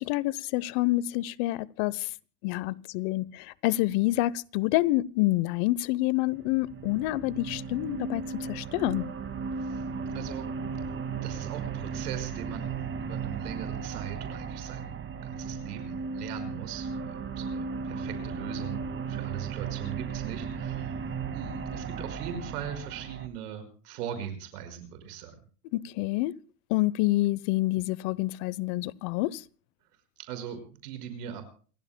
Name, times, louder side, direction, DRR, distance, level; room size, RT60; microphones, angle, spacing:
voice 1, 0.0-2.1 2.4-9.0 25.7-26.3 26.7-29.4, left 18 dB, 50° left, 0.9 m, -27 dB
sound 1, 6.3-23.3, right 5 dB, 25° right, 2.1 m, -36 dB
voice 2, 9.5-9.9 10.1-10.5 11.2-14.9 15.2-21.0 21.3-25.3 30.2-31.4, right 9 dB, 70° right, 5.4 m, -40 dB
29.0 x 16.0 x 2.2 m
hypercardioid pair, 100°, 48 cm